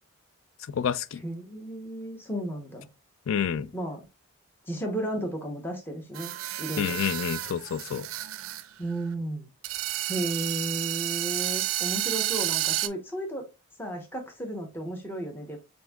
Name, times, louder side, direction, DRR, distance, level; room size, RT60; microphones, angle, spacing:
voice 1, 0.7-1.2 3.3-3.7 6.8-8.1, left 8 dB, 70° left, 0.3 m, -28 dB
voice 2, 1.2-2.9 3.7-4.0 4.7-6.3 6.6-7.0 8.8-9.5 10.1-13.4 13.8-15.6, right 1 dB, 10° left, 0.8 m, -33 dB
sound 1, 6.1-8.6 8.9-9.0 9.6-12.9, right 15 dB, 75° right, 0.4 m, -31 dB
7.2 x 2.6 x 2.3 m
head